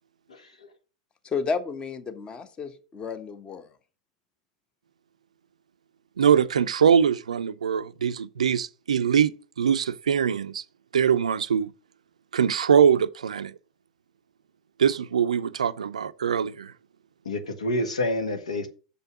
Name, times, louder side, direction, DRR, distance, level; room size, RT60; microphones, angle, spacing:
voice 1, 0.3-0.7 17.2-18.7, left 1 dB, 75° left, 1.4 m, -28 dB
voice 2, 1.2-3.7, left 5 dB, 25° left, 1.1 m, -32 dB
voice 3, 6.2-10.6 10.9-11.7 12.3-13.5 14.8-16.7, right 7 dB, 75° right, 0.4 m, -22 dB
6.8 x 5.4 x 5.9 m
figure-of-eight pair, 85°, 4 cm